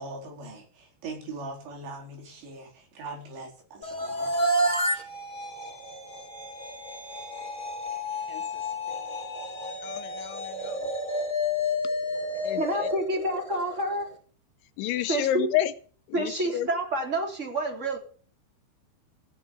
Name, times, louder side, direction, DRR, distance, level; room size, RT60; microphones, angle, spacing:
voice 1, 0.0-4.4, right 3 dB, 70° right, 6.4 m, -41 dB
sound 1, 3.8-14.0, left 1 dB, 15° left, 2.8 m, -30 dB
voice 2, 8.3-8.6 9.8-10.8 12.4-12.6 14.8-15.7 16.1-16.7, left 12 dB, 90° left, 3.3 m, -30 dB
voice 3, 12.6-14.1 15.1-15.5 16.1-18.0, right 1 dB, 15° right, 3.2 m, -28 dB
16.5 x 7.3 x 8.2 m
omnidirectional pair, 5.3 m